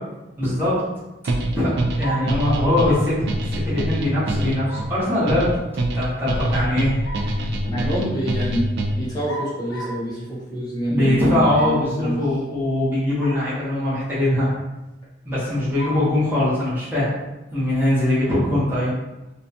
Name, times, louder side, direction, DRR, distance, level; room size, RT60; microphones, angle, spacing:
voice 1, 0.4-0.8 1.5-1.7 2.0-3.3 3.6-5.5 5.9-7.4 10.9-14.5 15.3-17.1 17.5-18.9, left 1 dB, 10° right, -10 dB, 0.8 m, -21 dB
sound 1, 1.3-9.2, right 1 dB, 60° right, 0.3 m, -25 dB
sound 2, 2.0-2.4 4.7-5.0 6.8-7.4 9.3-10.1 11.5-11.9 13.2-13.5 14.0-14.1 15.8-16.1, right 2 dB, 90° left, 0.6 m, -33 dB
voice 2, 7.7-8.7 9.0-12.2, equal, 20° left, -8 dB, 0.9 m, -26 dB
2.6 x 2.2 x 2.6 m, 1.0 s
head